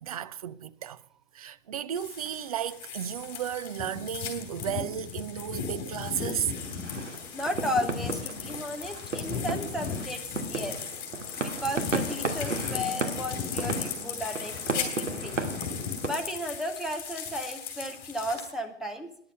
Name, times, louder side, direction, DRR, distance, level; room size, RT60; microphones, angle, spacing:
voice 1, 0.0-1.0 1.3-6.5, right 9 dB, 30° right, 0.4 m, -34 dB
sound 1, 1.9-18.5, left 7 dB, 25° left, 3.8 m, -36 dB
sound 2, 6.6-16.1, right 3 dB, 75° right, 2.2 m, -35 dB
voice 2, 7.3-10.2 10.5-10.8 11.4-15.4 16.0-19.1, equal, ahead, 0.9 m, -34 dB
13.0 x 10.5 x 5.5 m
figure-of-eight pair, 125°, 37 cm